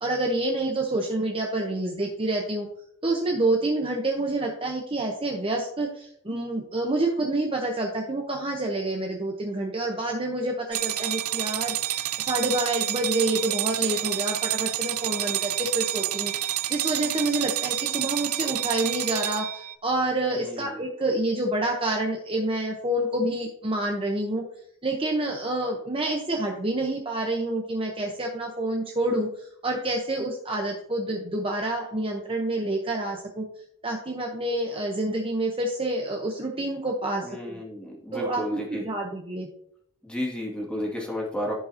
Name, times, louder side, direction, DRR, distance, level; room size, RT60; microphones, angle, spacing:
voice 1, 0.0-2.7 3.0-24.4 24.8-33.5 33.8-37.6 38.1-39.5, right 1 dB, 25° right, 1 dB, 0.9 m, -28 dB
sound 1, 10.7-19.8, right 14 dB, 90° right, 0.5 m, -28 dB
voice 2, 20.3-20.8 37.2-38.9 40.0-41.5, equal, 5° left, -3 dB, 2.1 m, -32 dB
15.0 x 5.3 x 2.8 m, 0.69 s
head